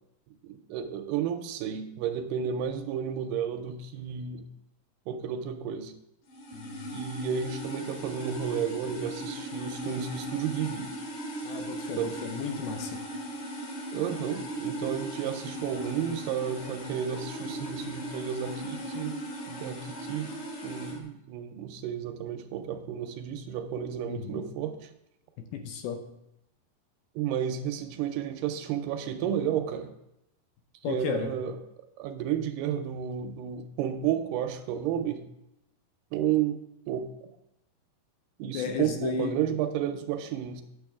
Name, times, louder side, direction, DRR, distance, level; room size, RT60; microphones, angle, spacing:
voice 1, 0.4-4.5 5.1-5.9 6.9-10.9 12.0-12.2 13.9-19.2 19.5-20.3 20.6-24.9 27.2-29.9 30.9-31.6 32.0-35.2 36.1-36.6 36.9-37.1 38.4-40.6, right 9 dB, 80° right, 7 dB, 2.5 m, -32 dB
sound 1, 6.3-21.0, right 1 dB, 60° left, 3.6 m, -38 dB
voice 2, 6.5-7.1 11.4-13.0 24.1-24.4 25.4-26.0 30.8-31.3 38.5-39.4, left 7 dB, 75° left, 6 dB, 2.5 m, -34 dB
9.1 x 7.0 x 3.6 m, 0.83 s
omnidirectional pair, 4.7 m